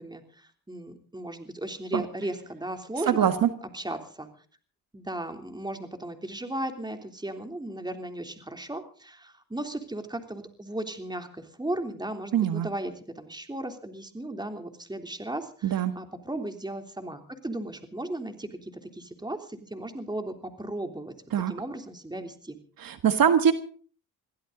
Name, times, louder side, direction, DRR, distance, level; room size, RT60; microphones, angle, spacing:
voice 1, 0.0-3.3 3.7-4.3 4.9-21.1 21.5-22.6, right 1 dB, 10° right, 6 dB, 3.3 m, -36 dB
voice 2, 3.1-3.5 12.3-12.7 15.6-15.9 21.3-21.5 22.8-23.5, right 8 dB, 70° right, 10 dB, 1.6 m, -22 dB
22.5 x 16.0 x 4.0 m, 0.41 s
cardioid pair, 70°, 36 cm